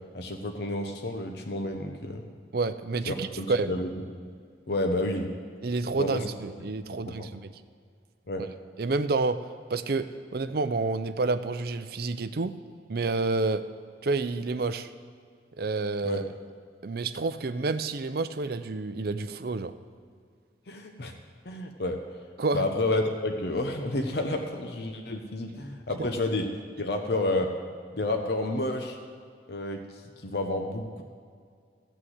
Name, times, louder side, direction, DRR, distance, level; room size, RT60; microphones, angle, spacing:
voice 1, 0.1-2.2 3.1-3.9 4.7-5.3 6.0-6.2 7.1-7.3 8.3-8.4 16.0-16.3 20.7-21.1 21.4-22.0 22.5-26.5 26.8-27.5 27.9-29.0 29.5-31.0, left 2 dB, 55° left, 4 dB, 0.8 m, -30 dB
voice 2, 2.5-3.7 5.6-7.5 8.8-12.5 12.9-13.6 14.0-14.9 15.6-16.2 16.8-19.7 22.4-22.6, right 3 dB, 55° right, 11 dB, 0.5 m, -29 dB
14.5 x 6.2 x 7.9 m, 2.1 s
head